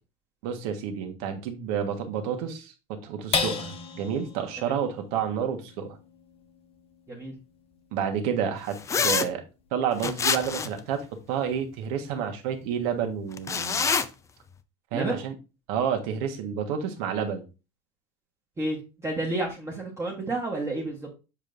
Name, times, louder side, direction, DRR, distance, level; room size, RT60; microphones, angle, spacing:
voice 1, 0.4-6.0 7.9-8.8 9.0-9.4 9.7-13.9 14.9-15.3 15.7-17.4, right 8 dB, 80° right, 1.5 m, -30 dB
sound 1, 3.3-10.0 10.5-10.6 11.0-11.5, left 5 dB, 30° left, 0.9 m, -36 dB
sound 2, 8.9-9.3 10.0-10.8 13.4-14.0, left 5 dB, 15° left, 0.4 m, -25 dB
voice 2, 18.6-21.2, right 2 dB, 15° right, 1.1 m, -31 dB
7.4 x 5.2 x 2.6 m
cardioid pair, 145°, 19 cm